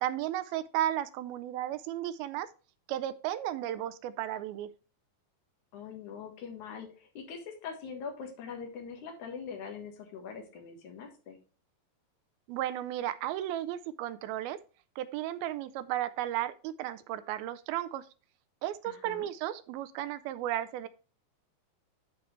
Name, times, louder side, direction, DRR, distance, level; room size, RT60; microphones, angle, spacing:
voice 1, 0.0-2.5 2.9-4.7 12.5-14.6 15.0-18.1 18.6-20.9, right 12 dB, 80° right, 13 dB, 2.3 m, -34 dB
voice 2, 5.7-11.4 18.8-19.3, left 6 dB, 60° left, 3 dB, 2.6 m, -43 dB
11.0 x 4.6 x 3.2 m, 0.36 s
omnidirectional pair, 4.5 m